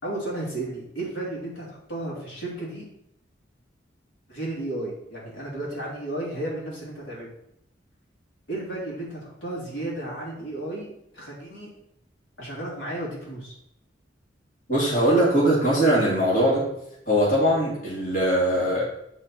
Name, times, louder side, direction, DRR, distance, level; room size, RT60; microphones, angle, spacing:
voice 1, 0.0-2.9 4.3-7.3 8.5-11.7 12.4-13.5, right 1 dB, 90° left, -4 dB, 3.2 m, -33 dB
voice 2, 14.7-16.6 17.1-18.8, right 1 dB, 45° left, -6 dB, 2.9 m, -21 dB
9.5 x 4.6 x 4.4 m, 0.80 s
head